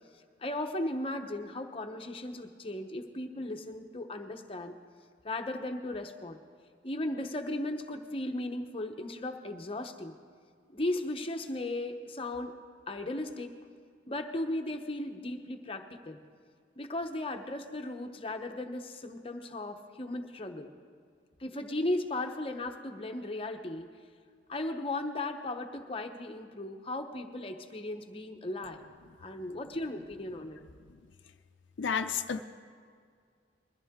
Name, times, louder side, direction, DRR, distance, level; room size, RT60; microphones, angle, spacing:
voice 1, 0.4-4.8 5.2-6.4 6.8-10.1 10.7-12.6 12.9-13.6 14.1-16.2 16.8-20.7 21.4-23.9 24.5-28.8 29.2-30.6, left 1 dB, 30° left, 5 dB, 0.9 m, -36 dB
voice 2, 31.8-32.4, left 6 dB, 85° left, 7 dB, 0.5 m, -31 dB
21.5 x 14.0 x 3.7 m, 2.1 s
head